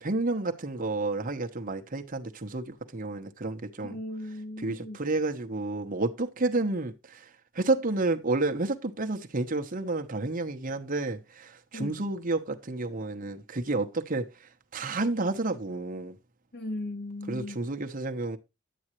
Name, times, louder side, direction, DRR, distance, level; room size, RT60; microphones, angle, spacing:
voice 1, 0.0-4.0 4.6-7.3 7.5-14.3 14.7-16.2 17.3-18.4, right 2 dB, 40° right, 1.0 m, -30 dB
voice 2, 3.8-5.0 11.7-12.0 16.5-17.6, left 1 dB, 45° left, 1.7 m, -37 dB
11.0 x 8.6 x 3.1 m
head